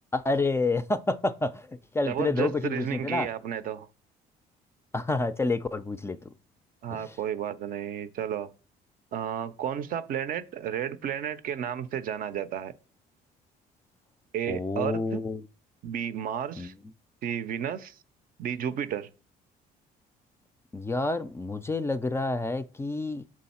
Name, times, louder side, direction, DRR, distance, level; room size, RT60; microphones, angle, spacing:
voice 1, 0.1-3.3 4.9-6.2 6.9-7.2 14.5-15.4 16.6-16.7 20.7-23.2, left 3 dB, 15° left, 0.3 m, -29 dB
voice 2, 2.1-3.9 6.8-8.5 9.1-12.7 14.3-15.2 15.8-16.7 17.2-18.0 18.4-19.1, right 9 dB, 60° right, 0.5 m, -32 dB
6.2 x 3.8 x 4.2 m
cardioid pair, 110°, 17 cm